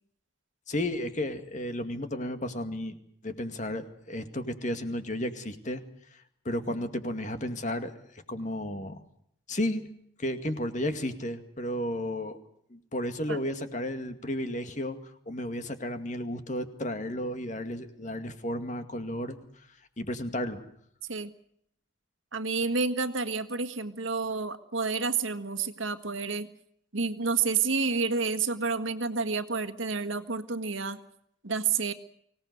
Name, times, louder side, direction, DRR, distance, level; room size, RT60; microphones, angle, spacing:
voice 1, 0.7-3.0 3.2-5.8 6.1-9.0 9.5-9.9 10.2-12.4 12.7-19.7 20.0-20.6, left 1 dB, 35° left, 8 dB, 2.1 m, -33 dB
voice 2, 22.3-26.5 26.9-31.0 31.4-31.9, right 4 dB, 75° right, 11 dB, 1.7 m, -29 dB
24.5 x 18.5 x 8.0 m, 0.72 s
head